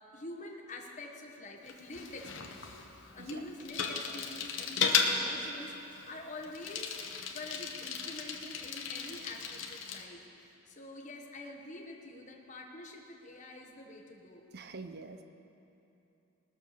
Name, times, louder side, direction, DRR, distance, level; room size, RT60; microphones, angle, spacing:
voice 1, 0.0-7.0 7.3-10.2 10.7-14.5, left 2 dB, 35° left, 1 dB, 1.3 m, -46 dB
Bicycle, 1.7-10.1, left 6 dB, 60° left, 1.0 m, -35 dB
voice 2, 14.5-15.2, right 3 dB, 50° right, 9 dB, 0.6 m, -45 dB
19.5 x 6.8 x 6.6 m, 2.9 s
head